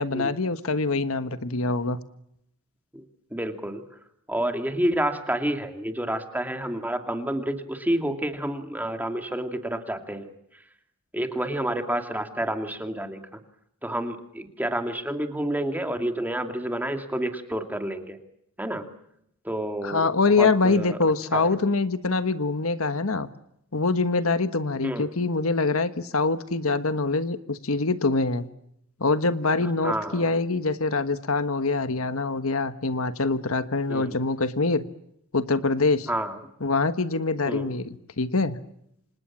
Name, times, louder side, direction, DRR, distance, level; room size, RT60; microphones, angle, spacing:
voice 1, 0.0-2.0 19.8-23.3 23.7-28.5 29.0-34.8 35.3-36.1 36.6-38.6, left 3 dB, 70° left, 11 dB, 1.4 m, -24 dB
voice 2, 3.3-3.8 4.3-10.3 11.1-13.2 13.8-18.2 18.6-18.9 19.4-20.1 20.4-21.0 21.3-21.6 24.8-25.1 29.8-30.3 33.9-34.2 36.1-36.4 37.5-37.8, right 1 dB, 10° right, 6 dB, 2.6 m, -29 dB
29.0 x 26.5 x 7.4 m, 0.77 s
head